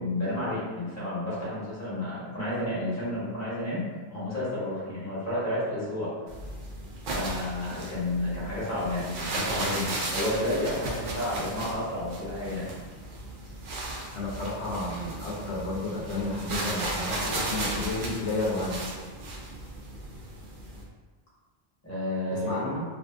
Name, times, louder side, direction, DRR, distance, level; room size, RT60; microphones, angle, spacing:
voice 1, 0.0-3.8 4.1-6.1 7.1-12.7 21.8-22.6, left 1 dB, 15° left, -10 dB, 1.0 m, -31 dB
sound 1, 6.3-20.8, right 2 dB, 60° right, 0.6 m, -35 dB
voice 2, 14.1-18.8 22.3-22.8, left 2 dB, 90° left, -4 dB, 1.0 m, -31 dB
2.6 x 2.5 x 2.3 m, 1.3 s
omnidirectional pair, 1.2 m